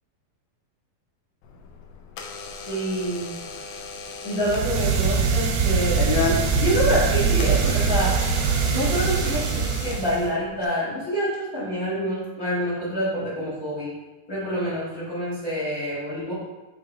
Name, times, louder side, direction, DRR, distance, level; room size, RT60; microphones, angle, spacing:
Door / Alarm, 1.4-10.7, left 4 dB, 80° left, 1.8 m, -34 dB
voice 1, 2.6-3.3 3.6-3.7 4.2-6.0 6.5-8.2 8.7-13.9 14.3-16.3, equal, 50° left, -9 dB, 1.0 m, -27 dB
sound 1, 4.4-10.3, right 6 dB, 80° right, 2.6 m, -23 dB
6.7 x 3.7 x 3.9 m, 1.1 s
omnidirectional pair, 4.4 m